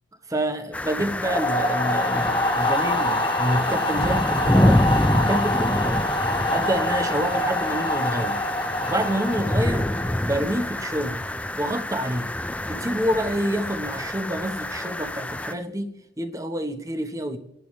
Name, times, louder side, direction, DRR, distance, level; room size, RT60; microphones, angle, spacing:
voice 1, 0.3-6.1 6.5-8.4 8.9-9.9 10.2-11.2 11.6-12.3 12.6-17.4, right 1 dB, 20° right, 1.1 m, -27 dB
sound 1, 0.7-15.5, left 1 dB, 5° left, 0.4 m, -27 dB
sound 2, 1.2-10.3, left 1 dB, 25° left, 1.4 m, -26 dB
28.5 x 11.0 x 3.2 m
head